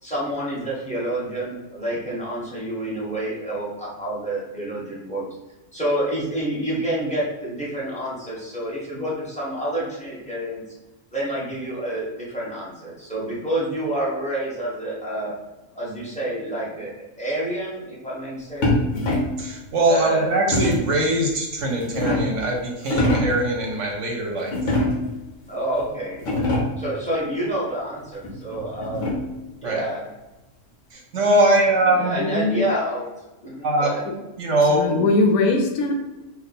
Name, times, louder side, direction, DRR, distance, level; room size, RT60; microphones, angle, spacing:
voice 1, 0.0-5.3 5.7-10.7 11.1-15.3 15.7-16.9 17.2-18.8 19.9-20.3 25.5-26.2 26.8-29.1 29.6-30.1 31.9-33.1 33.4-34.0, right 1 dB, 5° left, -7 dB, 1.0 m, -28 dB
sound 1, 18.6-19.4 20.5-21.0 21.6-22.4 22.8-23.4 24.5-25.2 25.8-25.9 26.1-26.9 28.2-29.4, left 1 dB, 60° left, 1.1 m, -24 dB
voice 2, 19.4-24.5 29.6-29.8 30.9-32.2 33.6-33.9 34.4-34.8, right 1 dB, 60° right, 0 dB, 1.0 m, -21 dB
voice 3, 32.1-32.7 34.0-34.2 34.6-35.9, left 3 dB, 75° left, 3 dB, 1.0 m, -21 dB
3.5 x 2.4 x 4.0 m, 1.1 s
omnidirectional pair, 1.5 m